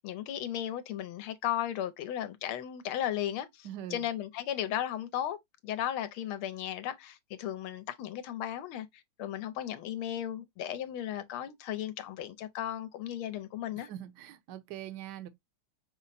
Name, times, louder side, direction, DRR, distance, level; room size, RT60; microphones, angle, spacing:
voice 1, 0.0-5.4 5.6-13.9, left 11 dB, 80° left, 1.5 m, -35 dB
voice 2, 3.6-4.1 13.7-15.3, right 11 dB, 65° right, 1.1 m, -43 dB
5.6 x 2.1 x 4.0 m
omnidirectional pair, 2.4 m